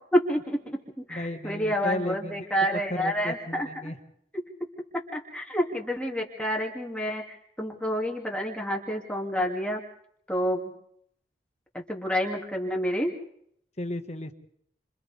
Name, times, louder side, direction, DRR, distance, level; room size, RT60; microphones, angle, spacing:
voice 1, 0.1-0.8 1.1-3.7 5.1-9.8 10.3-10.7 11.7-13.1, equal, 5° left, 0 dB, 2.6 m, -28 dB
voice 2, 1.1-2.5 2.7-4.0 13.8-14.3, left 1 dB, 35° left, 5 dB, 1.7 m, -34 dB
29.5 x 27.0 x 3.6 m, 0.69 s
head